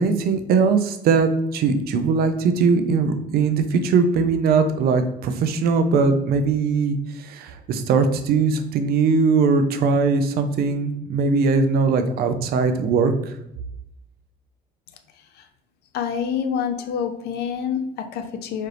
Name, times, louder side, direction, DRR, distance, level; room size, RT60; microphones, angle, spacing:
voice 1, 0.0-13.4, right 4 dB, 65° right, 7 dB, 0.5 m, -20 dB
voice 2, 15.9-18.7, left 7 dB, 75° left, 7 dB, 0.5 m, -27 dB
4.2 x 2.5 x 3.3 m, 0.85 s
cardioid pair, 110°, 17 cm